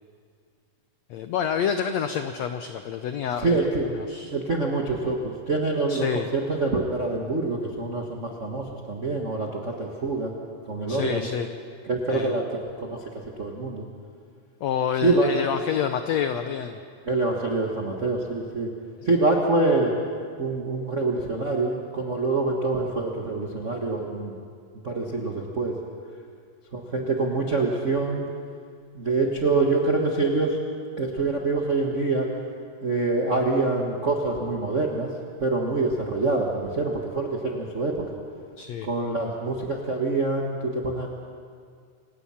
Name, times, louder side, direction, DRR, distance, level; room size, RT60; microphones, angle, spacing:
voice 1, 1.1-4.3 5.9-6.3 10.9-11.5 12.1-12.4 14.6-16.8 38.6-38.9, left 8 dB, 80° left, 8 dB, 1.5 m, -28 dB
voice 2, 3.4-3.8 4.3-10.3 10.7-11.3 11.9-13.0 13.4-13.8 15.0-15.3 17.0-18.7 19.0-19.9 20.4-24.3 24.8-25.7 26.7-28.3 28.9-30.6 31.0-32.3 32.8-35.1 35.4-38.0 38.8-41.1, right 3 dB, 55° right, -1 dB, 0.8 m, -25 dB
27.5 x 17.0 x 5.8 m, 2.1 s
omnidirectional pair, 4.0 m